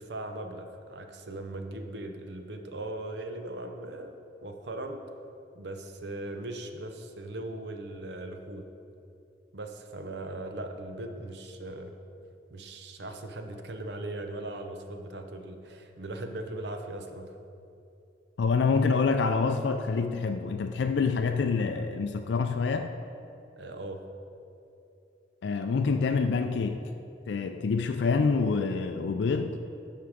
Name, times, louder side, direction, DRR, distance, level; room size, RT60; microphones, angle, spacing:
voice 1, 0.0-4.2 4.4-5.0 5.5-8.6 9.5-11.9 12.5-17.3 23.6-24.0, right 2 dB, 70° right, 5 dB, 0.8 m, -39 dB
voice 2, 18.4-22.9 25.4-26.8 27.3-29.6, left 4 dB, 75° left, 7 dB, 0.4 m, -26 dB
11.0 x 5.8 x 5.0 m, 2.7 s
head